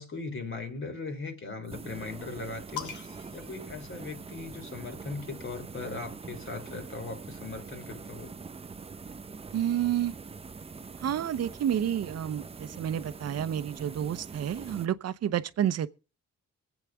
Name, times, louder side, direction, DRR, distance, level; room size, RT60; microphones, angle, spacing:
voice 1, 0.0-8.3, left 3 dB, 45° left, 3.3 m, -39 dB
sound 1, 1.6-14.9, right 4 dB, 20° right, 0.6 m, -44 dB
sound 2, 2.8-4.6 5.7-7.3, left 8 dB, 75° left, 2.1 m, -45 dB
voice 2, 9.5-10.1 11.0-15.9, right 10 dB, 55° right, 0.8 m, -30 dB
24.0 x 8.3 x 3.5 m
cardioid pair, 90°, 30 cm